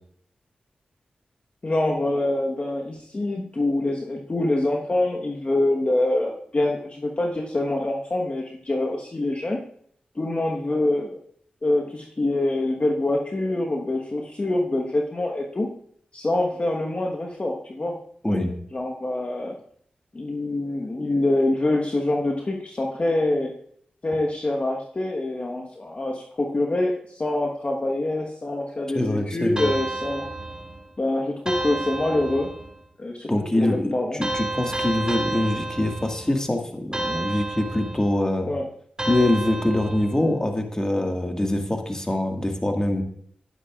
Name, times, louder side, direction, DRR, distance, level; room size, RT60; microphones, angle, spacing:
voice 1, 1.6-9.6 10.1-11.2 11.6-15.7 16.1-18.0 18.7-19.5 20.1-23.5 24.0-30.3 31.0-32.5 33.0-33.3 33.6-34.2 38.4-38.7, left 2 dB, 45° left, 0 dB, 1.2 m, -25 dB
voice 2, 28.9-29.7 33.3-38.5 39.1-43.0, left 1 dB, 20° left, 3 dB, 1.8 m, -24 dB
sound 1, 29.6-30.9 31.5-32.8 34.2-36.4 36.9-38.2 39.0-40.3, right 2 dB, 25° right, 2.3 m, -31 dB
10.5 x 9.7 x 2.4 m, 0.63 s
cardioid pair, 40°, 3 cm